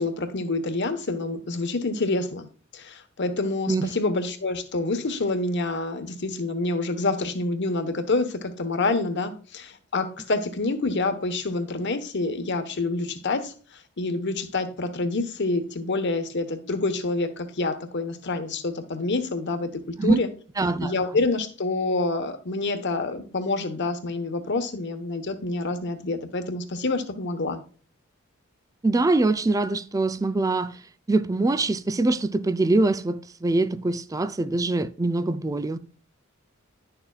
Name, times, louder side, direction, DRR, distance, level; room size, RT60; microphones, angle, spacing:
voice 1, 0.0-2.5 2.7-20.3 20.8-27.6, left 3 dB, 55° left, 1.1 m, -27 dB
voice 2, 20.6-20.9 28.8-30.7 31.1-35.8, right 2 dB, 15° right, 0.4 m, -23 dB
11.0 x 6.8 x 2.3 m
head